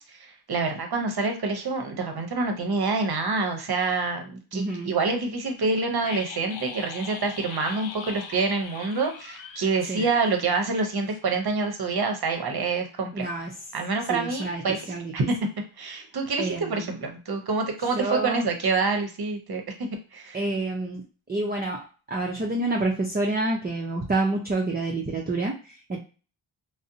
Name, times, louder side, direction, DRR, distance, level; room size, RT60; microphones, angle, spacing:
voice 1, 0.1-13.3 13.7-15.3 15.8-20.4, right 4 dB, 50° right, 4 dB, 0.7 m, -27 dB
voice 2, 4.5-4.9 9.9-10.0 13.1-13.5 14.1-14.6 14.9-15.1 16.4-17.0 18.0-18.5 20.3-21.0 21.3-26.0, right 2 dB, 20° right, 0 dB, 0.4 m, -28 dB
sound 1, 6.0-10.8 11.1-11.2, left 6 dB, 70° left, 0.5 m, -41 dB
2.6 x 2.0 x 2.6 m, 0.36 s
wide cardioid pair, 65°, 50 cm